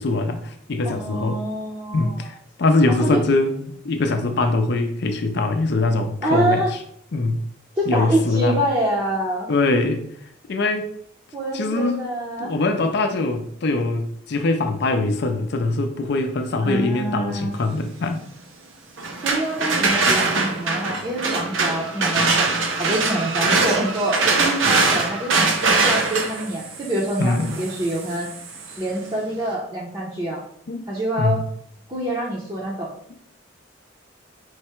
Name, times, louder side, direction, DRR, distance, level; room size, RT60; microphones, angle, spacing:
voice 1, 0.0-1.4 1.9-6.6 7.1-7.4 7.9-8.6 9.5-10.0 10.5-10.9 11.5-12.0 12.4-18.3 27.2-27.6 30.7-30.8 31.2-31.4, left 2 dB, 55° left, 0.5 m, -22 dB
voice 2, 0.8-2.3 2.9-3.2 6.2-6.7 7.7-9.5 11.3-12.5 16.6-17.6 19.2-28.3 28.8-30.5 30.9-31.4 31.9-32.9, right 1 dB, 25° right, 0.7 m, -26 dB
sound 1, 19.0-28.8, right 3 dB, 75° right, 0.7 m, -22 dB
4.6 x 2.1 x 4.3 m
head